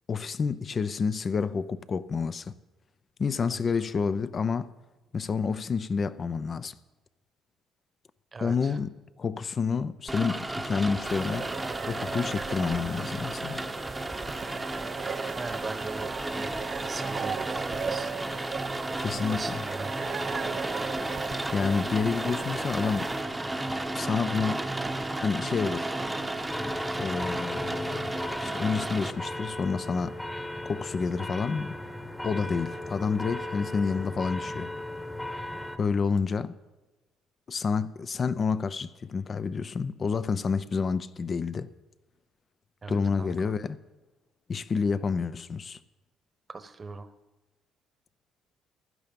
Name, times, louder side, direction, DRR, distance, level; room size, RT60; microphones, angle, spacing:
voice 1, 0.1-2.5 3.2-4.7 5.1-6.7 8.4-8.9 9.2-11.5 11.9-13.6 19.0-19.6 21.5-23.1 23.9-24.6 25.2-25.9 27.0-28.0 28.4-30.2 30.6-31.7 32.2-34.7 35.8-36.5 37.5-41.7 42.9-43.8 44.5-45.8, left 5 dB, 40° left, 0.7 m, -29 dB
voice 2, 8.3-8.8 15.4-16.5 16.8-18.1 19.1-19.9 42.8-43.5 46.5-47.1, right 4 dB, 30° right, 1.1 m, -40 dB
Rain, 10.1-29.1, right 2 dB, 10° right, 1.0 m, -33 dB
sound 1, 11.0-23.2, right 6 dB, 45° right, 0.5 m, -38 dB
sound 2, 26.5-35.8, left 1 dB, 10° left, 1.2 m, -37 dB
16.0 x 11.5 x 5.4 m
supercardioid pair, 85°, 0 cm